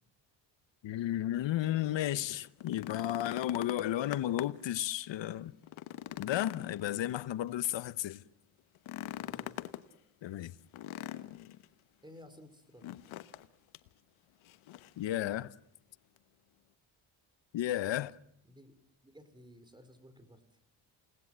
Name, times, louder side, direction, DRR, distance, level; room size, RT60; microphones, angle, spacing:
voice 1, 0.8-5.5 6.2-8.2 10.2-10.5 15.0-15.5 17.5-18.1, left 13 dB, 65° left, 1.0 m, -33 dB
sound 1, 2.4-4.7 5.1-5.2 5.6-7.5 8.7-9.8 10.7-11.6 12.8-13.5 13.7-13.9 14.4-15.0 16.2-16.3, left 14 dB, 85° left, 1.2 m, -43 dB
voice 2, 9.1-9.6 12.0-13.0 18.4-18.8 19.0-20.6, left 1 dB, 10° right, 4.4 m, -55 dB
29.0 x 18.5 x 7.6 m
cardioid pair, 90°, 47 cm